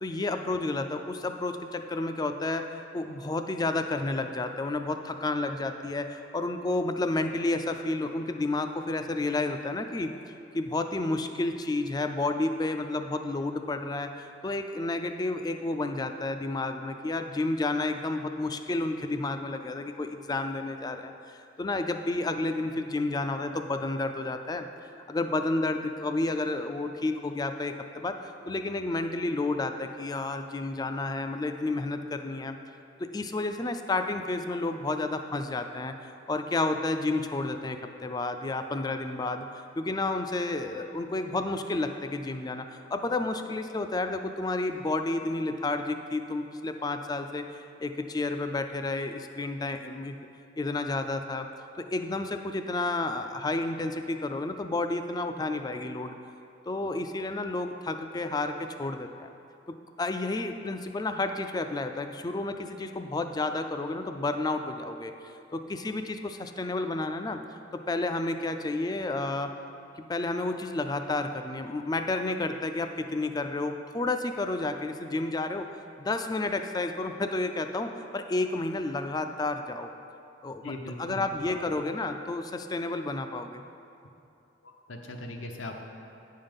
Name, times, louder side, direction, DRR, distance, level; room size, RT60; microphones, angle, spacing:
voice 1, 0.0-10.1 10.5-24.7 25.1-32.6 33.0-39.5 39.8-50.1 50.6-51.5 51.8-56.1 56.7-59.3 59.7-65.1 65.5-67.4 67.7-69.5 70.0-75.7 76.0-79.9 80.4-80.7 81.0-83.6, left 2 dB, 20° left, 7 dB, 0.4 m, -31 dB
voice 2, 80.6-81.6 84.6-85.7, left 1 dB, 85° left, 3 dB, 0.8 m, -40 dB
9.4 x 5.6 x 5.3 m, 2.7 s
head